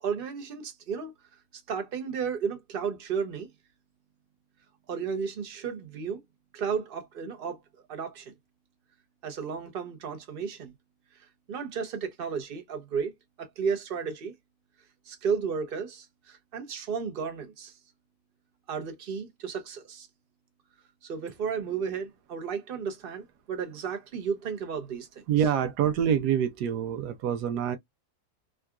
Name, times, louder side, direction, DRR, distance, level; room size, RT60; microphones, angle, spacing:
voice 1, 0.0-1.1 1.7-3.5 4.9-6.2 6.5-7.6 7.9-8.3 9.2-10.7 11.5-13.1 13.4-14.3 15.1-17.7 18.7-20.1 21.0-25.2, right 6 dB, 45° right, 0.7 m, -33 dB
voice 2, 25.3-27.8, right 9 dB, 80° right, 1.2 m, -26 dB
3.7 x 2.3 x 2.2 m
omnidirectional pair, 1.7 m